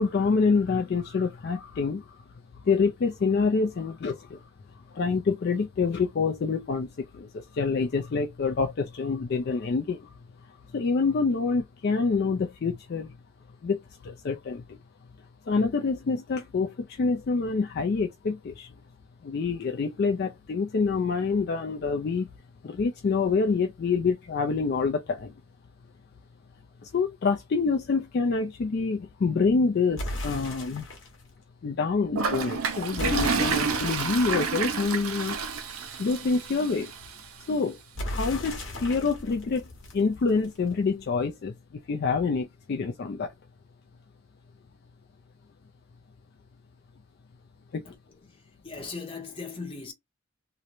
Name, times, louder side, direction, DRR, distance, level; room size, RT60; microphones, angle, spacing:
voice 1, 0.0-2.2 2.6-4.4 4.9-10.1 10.7-13.2 13.6-14.8 15.5-18.7 19.2-22.3 22.6-25.3 26.8-30.9 31.6-35.4 36.0-36.9 37.5-41.5 41.9-43.3 47.7-47.8, left 4 dB, 50° left, 0.3 m, -27 dB
sound 1, 30.0-31.2 33.0-35.7 38.0-40.7, left 1 dB, 65° left, 1.0 m, -36 dB
Toilet flush, 32.2-37.2, right 5 dB, 85° right, 0.5 m, -29 dB
voice 2, 47.8-49.9, left 4 dB, 25° left, 0.7 m, -39 dB
2.9 x 2.1 x 2.5 m
head